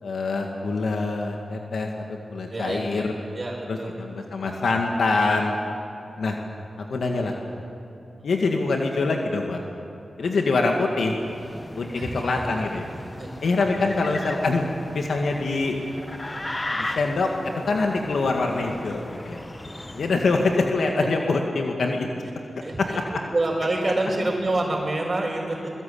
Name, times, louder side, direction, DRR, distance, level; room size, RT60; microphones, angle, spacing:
voice 1, 0.0-3.1 3.7-5.6 6.2-6.4 6.8-7.4 8.2-9.6 10.2-11.1 11.8-12.8 13.4-14.6 14.9-15.8 16.7-19.4 19.9-22.1 22.8-22.9, left 3 dB, 80° left, 2 dB, 2.0 m, -24 dB
voice 2, 2.5-3.0 3.3-4.0 11.9-12.5 13.2-13.4 13.7-14.0 22.6-23.0 23.3-25.7, right 2 dB, 35° right, -4 dB, 4.9 m, -27 dB
sound 1, 11.1-20.8, left 1 dB, 25° left, 1.4 m, -37 dB
22.0 x 22.0 x 8.6 m, 2.7 s
cardioid pair, 55°, 0 cm